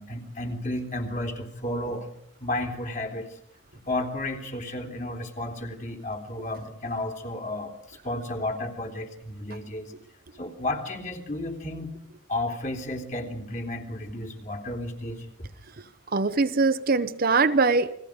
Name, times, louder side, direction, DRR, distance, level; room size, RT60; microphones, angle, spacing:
voice 1, 0.0-2.1 2.4-3.4 3.9-9.9 10.3-11.9 12.3-15.3, left 1 dB, 35° left, 3 dB, 3.5 m, -32 dB
voice 2, 16.1-17.9, right 4 dB, 45° right, 11 dB, 0.8 m, -22 dB
30.0 x 21.0 x 5.1 m, 0.71 s
head